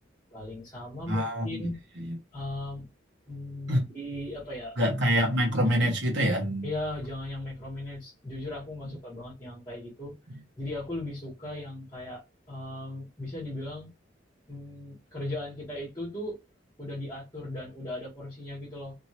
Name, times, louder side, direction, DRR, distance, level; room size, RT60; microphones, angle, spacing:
voice 1, 0.3-1.8 2.3-2.9 3.3-4.7 6.6-13.9 14.5-16.4 16.8-18.9, left 1 dB, 15° left, 1.4 m, -37 dB
voice 2, 1.1-1.7 2.0-2.1 3.7-3.8 4.8-6.7 8.8-8.9, equal, 65° right, 1.2 m, -26 dB
2.9 x 2.7 x 2.8 m
head